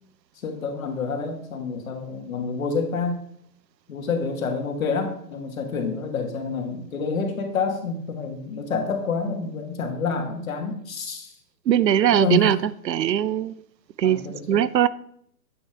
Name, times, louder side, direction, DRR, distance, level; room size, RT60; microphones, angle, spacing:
voice 1, 0.4-3.2 3.9-11.3 12.1-12.6 14.0-14.6, left 4 dB, 55° left, 4 dB, 1.4 m, -28 dB
voice 2, 11.7-12.6 12.9-13.5 14.0-14.2 14.5-14.9, right 10 dB, 80° right, 15 dB, 0.6 m, -20 dB
8.5 x 3.6 x 4.3 m, 0.66 s
hypercardioid pair, 150°, 50 cm